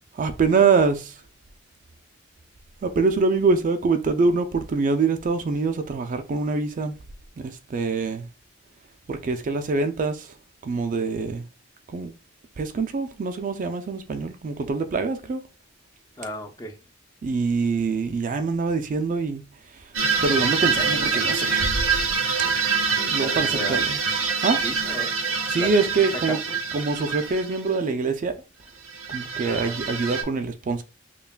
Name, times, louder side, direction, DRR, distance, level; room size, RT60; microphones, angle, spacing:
voice 1, 0.1-1.1 2.8-7.0 7.4-8.3 9.1-10.3 10.6-11.4 11.9-12.1 12.6-15.4 17.2-19.4 20.2-21.9 23.0-24.0 24.4-24.6 25.5-26.4 26.7-28.4 29.1-30.8, right 4 dB, 40° right, 0.3 m, -24 dB
voice 2, 16.2-16.8 23.2-23.8 24.6-25.1 25.6-25.9 26.3-26.6 29.4-29.8, equal, 20° left, 0.5 m, -35 dB
sound 1, 19.9-27.8 28.9-30.2, right 5 dB, 90° right, 0.8 m, -25 dB
5.4 x 2.3 x 2.3 m
head